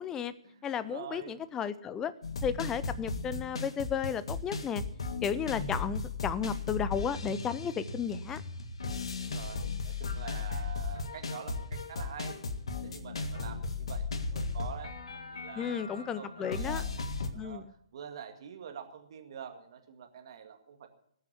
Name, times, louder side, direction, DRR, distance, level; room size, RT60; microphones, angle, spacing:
voice 1, 0.0-0.3 0.6-2.1 2.4-4.8 5.2-8.4 15.6-16.8 17.3-17.6, left 7 dB, 15° left, 15 dB, 0.7 m, -33 dB
voice 2, 0.5-1.4 9.2-12.4 12.8-17.6 17.9-20.9, right 7 dB, 50° right, 5 dB, 2.0 m, -46 dB
sound 1, 2.2-17.3, left 4 dB, 65° left, 1.8 m, -36 dB
19.5 x 7.0 x 8.3 m, 0.68 s
figure-of-eight pair, 130°, 3 cm